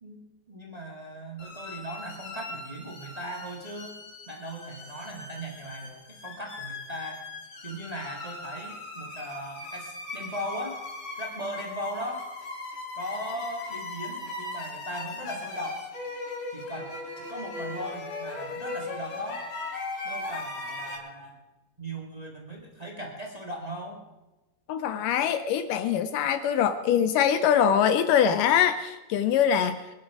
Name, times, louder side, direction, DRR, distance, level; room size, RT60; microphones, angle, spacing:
voice 1, 0.0-4.0 4.3-7.2 7.6-10.8 11.2-12.3 12.9-15.9 16.5-19.4 20.0-21.4 21.8-24.0, equal, 35° right, 0 dB, 0.6 m, -38 dB
sound 1, 1.4-21.0, left 3 dB, 55° left, 4.3 m, -39 dB
voice 2, 24.7-29.9, left 8 dB, 85° left, 11 dB, 1.8 m, -23 dB
24.5 x 11.0 x 4.9 m, 1.1 s
omnidirectional pair, 4.7 m